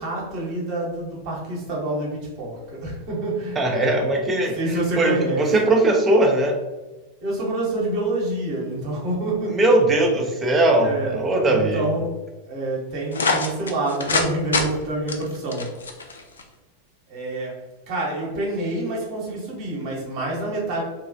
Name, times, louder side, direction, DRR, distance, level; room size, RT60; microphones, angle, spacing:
voice 1, 0.0-3.6 4.5-5.7 7.2-9.6 10.7-11.2 11.4-15.9 17.1-20.8, right 2 dB, 45° right, -3 dB, 0.9 m, -27 dB
voice 2, 3.6-4.6 5.0-6.6 9.5-11.8, right 2 dB, 20° right, 2 dB, 0.5 m, -19 dB
sound 1, 13.1-14.3 14.5-14.7 15.1-16.4, left 4 dB, 70° left, 0.3 m, -24 dB
2.8 x 2.3 x 2.5 m, 1.1 s
figure-of-eight pair, 90°, 0 cm